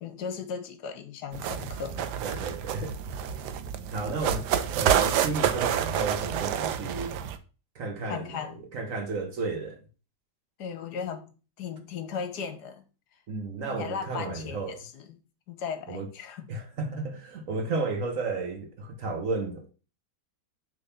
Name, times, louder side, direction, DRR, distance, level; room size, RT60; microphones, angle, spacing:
voice 1, 0.0-2.1 8.1-8.6 10.6-11.2 11.6-12.8 13.6-15.2 15.5-16.5, left 6 dB, 70° left, 1.4 m, -36 dB
sound 1, 1.3-7.4, right 9 dB, 75° right, 1.2 m, -28 dB
voice 2, 2.2-3.0 3.9-4.4 4.7-7.2 7.8-8.3 8.7-9.8 13.3-14.8 15.9-16.1 16.5-19.7, right 3 dB, 55° right, 1.2 m, -32 dB
6.7 x 3.6 x 5.5 m
omnidirectional pair, 1.9 m